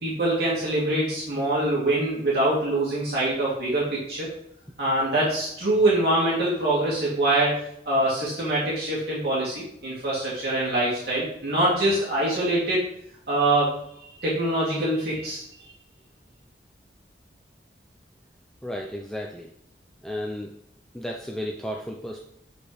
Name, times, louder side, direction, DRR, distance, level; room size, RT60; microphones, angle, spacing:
voice 1, 0.0-4.3 4.8-12.9 13.3-13.8 14.2-15.4, right 1 dB, 65° right, -8 dB, 2.4 m, -24 dB
voice 2, 18.6-19.5 20.0-20.5 20.9-22.3, equal, 5° left, 0 dB, 0.5 m, -33 dB
7.3 x 4.9 x 3.2 m, 0.72 s
head